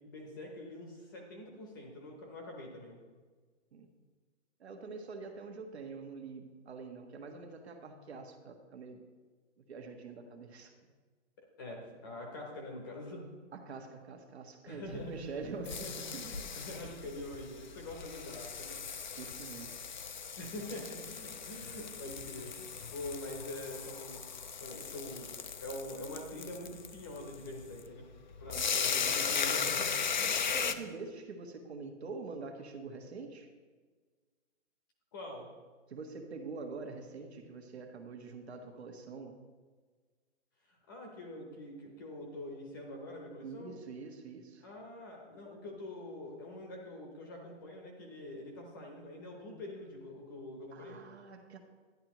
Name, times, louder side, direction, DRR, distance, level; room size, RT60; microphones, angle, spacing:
voice 1, 0.1-3.0 11.4-13.2 14.7-15.1 15.7-18.8 20.4-24.2 24.6-25.3 25.6-28.1 28.4-30.4 30.6-30.8 35.1-35.5 40.7-43.8 44.6-51.0, left 1 dB, 15° left, 1 dB, 0.8 m, -45 dB
voice 2, 4.6-9.0 9.6-10.7 13.5-16.4 16.8-17.2 19.2-19.8 28.5-28.6 28.9-29.3 30.5-33.5 35.9-39.4 43.4-44.7 50.7-51.6, right 4 dB, 60° right, 4 dB, 1.5 m, -45 dB
sound 1, 14.9-30.7, left 6 dB, 40° left, 0.4 m, -37 dB
11.0 x 10.5 x 3.0 m, 1.4 s
hypercardioid pair, 170°, 36 cm